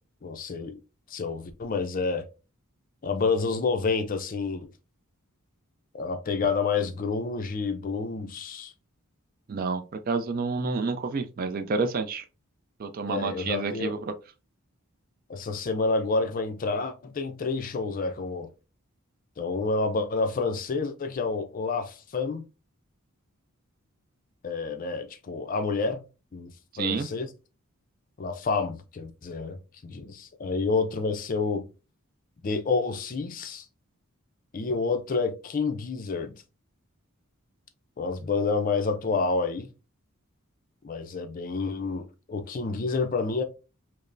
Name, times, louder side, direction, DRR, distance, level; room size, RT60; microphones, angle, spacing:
voice 1, 0.2-0.8 1.1-2.2 3.0-4.7 5.9-8.7 13.1-13.9 15.3-18.5 19.4-22.5 24.4-26.0 26.3-27.3 28.2-31.6 32.4-33.7 34.5-36.3 38.0-39.7 40.8-43.4, left 4 dB, 40° left, 0.4 m, -29 dB
voice 2, 9.5-12.2 12.8-14.0 26.7-27.1, right 4 dB, 40° right, 0.3 m, -29 dB
5.1 x 2.0 x 2.5 m
head